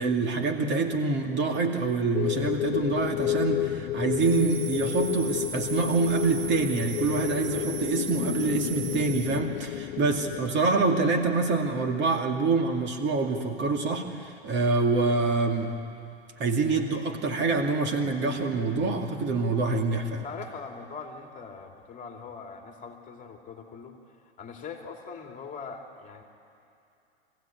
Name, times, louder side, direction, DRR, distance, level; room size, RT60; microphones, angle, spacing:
voice 1, 0.0-15.8 16.4-20.2, right 3 dB, 35° right, 3 dB, 2.3 m, -26 dB
sound 1, 2.1-10.5, left 15 dB, 75° left, 0.6 m, -31 dB
sound 2, 4.2-9.4, right 6 dB, 70° right, 1.8 m, -38 dB
voice 2, 20.2-24.0 24.4-26.2, left 5 dB, 25° left, 3 dB, 2.7 m, -41 dB
24.5 x 16.0 x 9.2 m, 2.6 s
hypercardioid pair, 110°, 32 cm